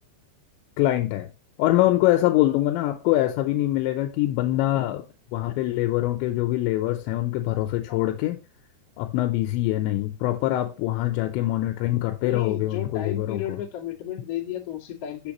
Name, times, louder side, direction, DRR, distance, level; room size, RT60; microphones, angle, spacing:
voice 1, 0.8-1.3 1.6-5.0 5.3-8.4 9.0-13.6, left 15 dB, 85° left, 2.9 m, -24 dB
voice 2, 12.2-15.3, left 10 dB, 50° left, 1.9 m, -33 dB
7.1 x 6.9 x 2.9 m
omnidirectional pair, 5.3 m